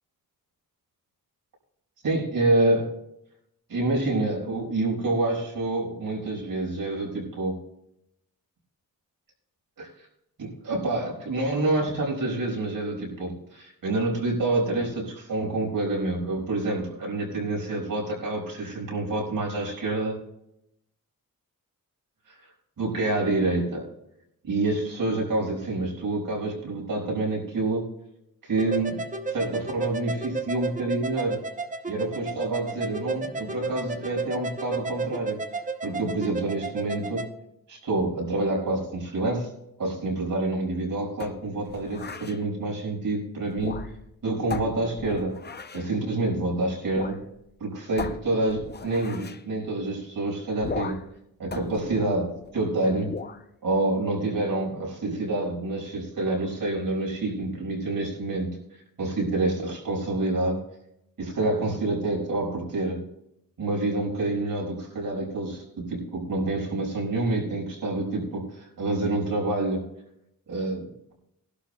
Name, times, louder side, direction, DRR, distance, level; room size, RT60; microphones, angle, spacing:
voice 1, 2.0-2.9 3.7-7.6 9.8-9.9 10.4-20.1 22.8-23.9 24.4-27.9 28.4-29.0 29.3-31.4 31.9-35.4 35.8-37.2 37.7-39.5 39.8-43.8 44.2-45.4 45.7-47.2 47.6-51.0 51.4-53.2 53.6-58.6 59.0-60.6 61.2-63.0 63.6-69.9 70.5-71.1, right 2 dB, 75° right, -3 dB, 5.5 m, -27 dB
sound 1, 28.6-37.3, right 3 dB, 20° right, 0.7 m, -33 dB
sound 2, 41.2-42.4 43.5-44.1 44.5-45.9 46.9-47.2 47.5-47.6 48.0-49.4 50.6-51.2 51.5-52.6 53.1-53.4, left 5 dB, 30° left, 0.6 m, -37 dB
21.0 x 12.0 x 2.3 m, 0.81 s
wide cardioid pair, 140°, 35 cm